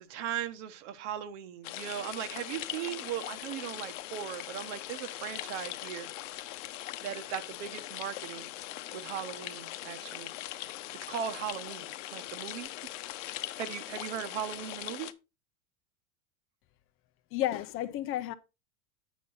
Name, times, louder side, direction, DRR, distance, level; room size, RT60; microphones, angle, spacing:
voice 1, 0.1-6.1 7.0-8.5 8.9-10.3 11.1-12.7 13.3-15.1, right 9 dB, 65° right, 1.3 m, -38 dB
sound 1, 1.6-15.1, left 15 dB, 70° left, 0.8 m, -41 dB
voice 2, 17.3-18.3, left 13 dB, 35° left, 0.5 m, -32 dB
8.5 x 5.2 x 4.0 m
supercardioid pair, 135°, 38 cm